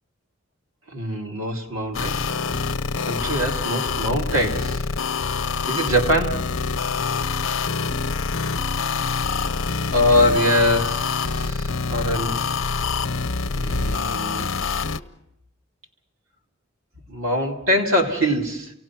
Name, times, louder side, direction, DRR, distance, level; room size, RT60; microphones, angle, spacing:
voice 1, 0.9-2.4 3.0-4.8 5.7-6.5 9.9-12.5 13.5-14.5 17.1-18.7, equal, 85° right, 1 dB, 2.6 m, -23 dB
sound 1, 1.9-15.0, left 4 dB, 85° left, 0.7 m, -26 dB
29.5 x 18.0 x 6.0 m, 0.85 s
head